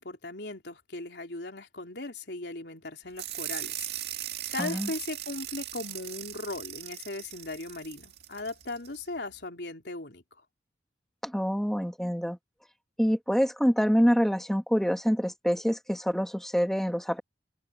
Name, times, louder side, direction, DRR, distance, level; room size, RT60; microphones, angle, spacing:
voice 1, 0.0-10.2, left 2 dB, 75° left, 3.6 m, -38 dB
sound 1, 3.2-9.0, right 13 dB, 75° right, 1.9 m, -38 dB
voice 2, 4.6-4.9 11.2-12.4 13.0-17.2, equal, ahead, 2.1 m, -26 dB
head